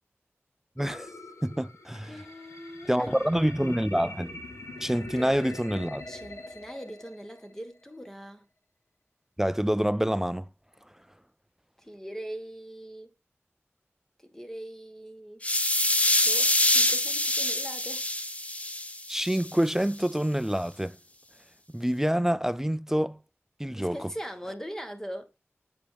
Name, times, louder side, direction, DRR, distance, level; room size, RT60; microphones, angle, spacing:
sound 1, 0.8-7.8, left 2 dB, 80° left, 1.1 m, -44 dB
voice 1, 0.8-1.1 1.4-2.2 2.9-4.4 4.8-6.0 9.4-10.5 19.1-21.0 21.7-23.2 23.6-24.1, equal, 10° right, 0.3 m, -27 dB
voice 2, 2.1-3.4 4.9-5.5 6.1-8.4 11.8-13.1 14.2-15.4 16.2-18.1 23.8-25.3, equal, 10° left, 1.6 m, -41 dB
sound 2, 15.4-19.5, left 1 dB, 30° left, 0.9 m, -25 dB
7.8 x 5.1 x 3.4 m
wide cardioid pair, 50°, 5 cm